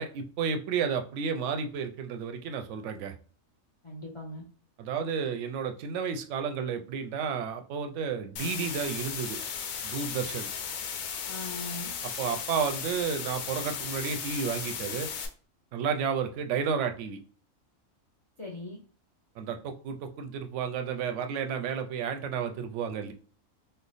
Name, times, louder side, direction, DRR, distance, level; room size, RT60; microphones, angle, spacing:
voice 1, 0.0-3.1 4.8-9.4 9.8-10.5 12.2-15.1 15.7-17.2 19.4-23.1, right 6 dB, 70° right, 7 dB, 0.8 m, -32 dB
voice 2, 3.8-4.4 11.3-11.9 18.4-18.8, left 2 dB, 35° left, -1 dB, 0.5 m, -40 dB
sound 1, 8.4-15.3, left 7 dB, 75° left, 1.0 m, -36 dB
3.2 x 2.0 x 3.9 m, 0.41 s
omnidirectional pair, 1.4 m